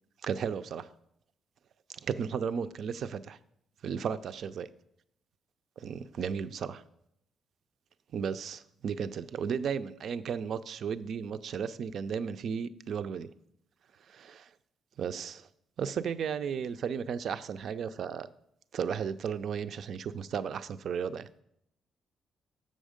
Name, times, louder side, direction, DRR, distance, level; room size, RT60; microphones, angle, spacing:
voice 1, 0.2-0.9 1.9-3.4 3.8-4.7 5.8-6.8 8.1-13.3 14.1-14.5 15.0-15.5 15.8-18.3 18.7-21.3, right 7 dB, 50° right, 12 dB, 0.4 m, -34 dB
7.5 x 6.3 x 5.0 m, 0.76 s
cardioid pair, 170°, 0 cm